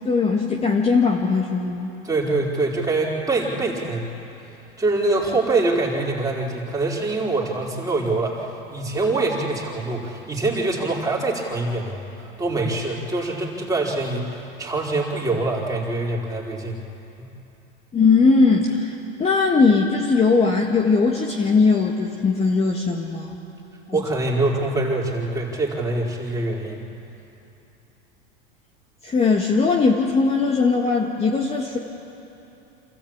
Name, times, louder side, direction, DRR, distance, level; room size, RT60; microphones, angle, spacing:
voice 1, 0.0-1.9 17.9-18.9 19.2-23.4 23.9-24.0 29.0-31.8, left 4 dB, 20° left, 0 dB, 1.7 m, -19 dB
voice 2, 2.0-4.1 4.8-16.8 17.2-17.3 23.9-26.8, right 2 dB, 10° right, -3 dB, 4.3 m, -24 dB
27.5 x 14.0 x 8.7 m, 2.9 s
hypercardioid pair, 115°, 29 cm